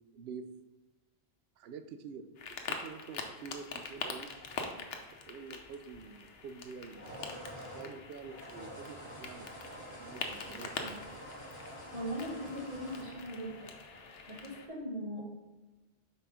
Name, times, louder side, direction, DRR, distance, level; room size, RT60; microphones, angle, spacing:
voice 1, 0.1-0.4 1.6-2.3 2.7-5.0 5.3-7.0 7.7-9.5 10.0-11.1, right 5 dB, 75° right, 9 dB, 0.8 m, -47 dB
sound 1, 2.4-14.7, left 4 dB, 75° left, 1.0 m, -44 dB
sound 2, 4.2-5.2 6.8-14.2, equal, 50° right, 2.4 m, -48 dB
voice 2, 11.9-13.7 14.3-15.2, equal, 35° right, -4 dB, 1.6 m, -39 dB
5.6 x 4.2 x 5.0 m, 1.1 s
omnidirectional pair, 1.1 m